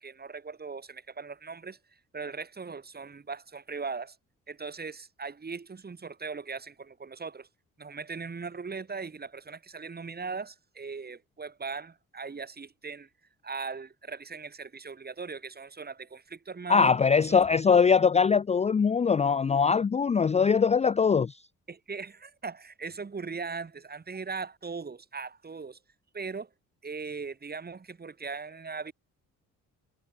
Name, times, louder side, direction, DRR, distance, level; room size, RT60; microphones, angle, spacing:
voice 1, 0.0-1.8 2.1-4.2 4.5-7.5 7.8-13.1 13.4-16.9 17.3-17.4 21.7-25.8 26.1-26.5 26.8-28.9, right 4 dB, 30° right, 5.6 m, -39 dB
voice 2, 16.7-21.3, left 6 dB, 20° left, 0.5 m, -22 dB
cardioid pair, 90°, 30 cm